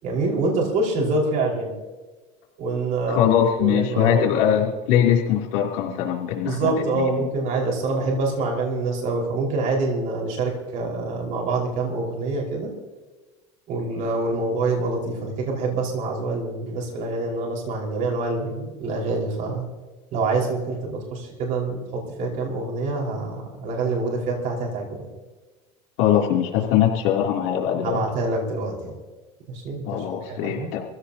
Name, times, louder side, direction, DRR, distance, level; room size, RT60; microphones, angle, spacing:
voice 1, 0.0-1.7 2.6-3.3 3.6-4.3 6.4-12.7 13.7-19.7 20.1-25.1 27.8-29.0 29.5-30.0 30.3-30.7, right 3 dB, 55° right, -1 dB, 5.1 m, -26 dB
voice 2, 3.1-7.3 26.0-28.0 29.8-30.8, left 9 dB, 70° left, -1 dB, 3.2 m, -21 dB
25.5 x 16.0 x 2.9 m, 1.2 s
supercardioid pair, 110°, 16 cm